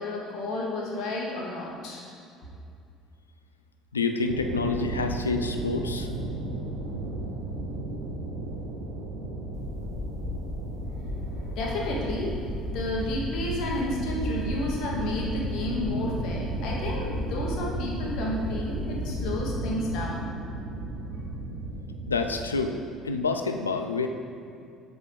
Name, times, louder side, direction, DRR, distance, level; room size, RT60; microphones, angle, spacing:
voice 1, 0.0-2.1 11.6-20.3, left 1 dB, 60° left, -2 dB, 1.1 m, -31 dB
voice 2, 3.9-6.1 22.1-24.1, left 4 dB, 90° left, 6 dB, 0.3 m, -28 dB
sound 1, 4.3-22.3, right 2 dB, 80° right, 0.7 m, -35 dB
sound 2, 9.5-19.5, left 2 dB, 35° left, 0.5 m, -35 dB
7.6 x 5.3 x 3.3 m, 2.4 s
figure-of-eight pair, 60°, 0 cm